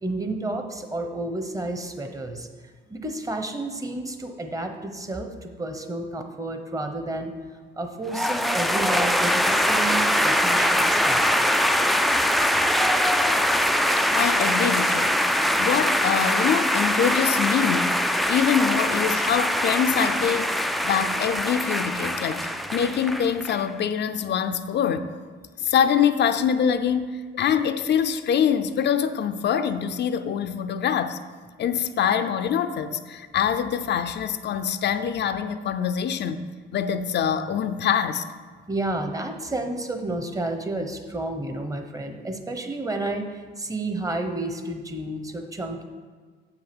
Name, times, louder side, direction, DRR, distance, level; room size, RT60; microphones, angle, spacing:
voice 1, 0.0-2.5 2.9-7.3 7.8-11.3 38.7-45.8, right 2 dB, 15° right, 5 dB, 1.0 m, -31 dB
sound 1, 8.1-23.6, equal, ahead, 0.4 m, -22 dB
voice 2, 14.1-15.2 15.6-18.0 18.3-25.1 25.6-31.2 31.6-36.4 36.7-38.2, left 8 dB, 60° left, 10 dB, 0.5 m, -24 dB
7.4 x 5.9 x 6.1 m, 1.5 s
cardioid pair, 90°, 20 cm